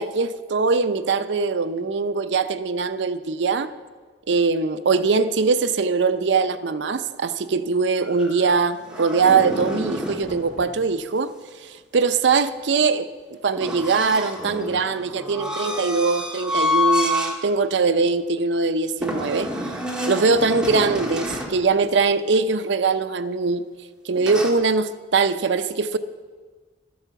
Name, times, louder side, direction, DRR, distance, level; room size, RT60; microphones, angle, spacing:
voice 1, 0.0-3.7 4.3-11.3 11.6-19.5 20.1-23.6 24.0-26.0, right 4 dB, 75° right, 0.6 m, -22 dB
sound 1, 8.0-10.3 13.6-17.4 17.8-18.0 19.0-21.6 24.2-24.5, left 1 dB, 5° right, 1.5 m, -28 dB
sound 2, 10.1-11.3 12.2-12.3 12.5-12.9 13.2-13.4 13.9-14.0 14.4-14.7 15.8-16.4 18.4-19.3 20.3-21.9, equal, 40° left, 2.7 m, -44 dB
12.5 x 10.5 x 6.9 m
head